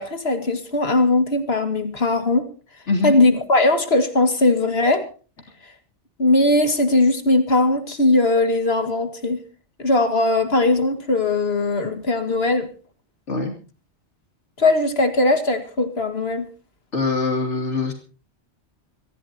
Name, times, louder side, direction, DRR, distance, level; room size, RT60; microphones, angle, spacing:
voice 1, 0.0-2.5 3.0-5.0 6.2-9.4 9.8-12.7 14.6-16.4, left 2 dB, 55° left, 8 dB, 2.4 m, -19 dB
voice 2, 2.9-3.2 13.3-13.5 16.9-17.9, left 3 dB, 75° left, 3 dB, 3.3 m, -23 dB
24.5 x 15.5 x 2.8 m, 0.36 s
omnidirectional pair, 1.2 m